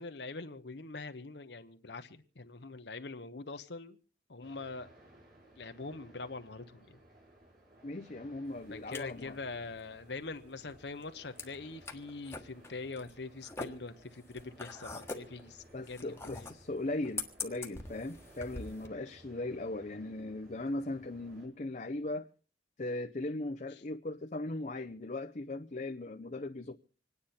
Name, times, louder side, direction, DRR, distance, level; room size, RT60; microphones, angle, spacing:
voice 1, 0.0-4.0 4.3-4.9 5.6-7.0 8.7-16.5, left 3 dB, 65° left, 1.0 m, -43 dB
sound 1, 4.4-21.5, right 1 dB, 50° right, 5.6 m, -59 dB
voice 2, 7.8-9.4 15.7-22.3 22.8-26.8, left 2 dB, 40° left, 0.7 m, -38 dB
sound 2, 8.5-18.9, left 3 dB, 15° left, 1.4 m, -45 dB
26.5 x 9.8 x 4.3 m
head